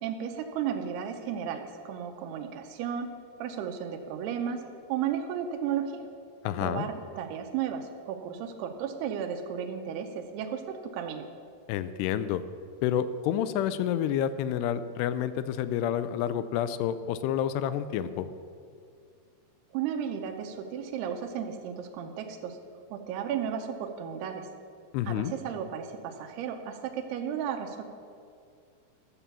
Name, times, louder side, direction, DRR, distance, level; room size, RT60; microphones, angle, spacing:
voice 1, 0.0-3.1 3.4-4.6 4.9-6.1 6.6-11.3 19.7-22.6 22.9-24.5 25.1-27.8, right 8 dB, 90° right, 3 dB, 2.7 m, -34 dB
voice 2, 6.4-6.9 11.7-12.4 12.8-18.3 24.9-25.3, left 10 dB, 85° left, 13 dB, 2.6 m, -29 dB
13.0 x 6.9 x 7.4 m, 2.3 s
omnidirectional pair, 4.7 m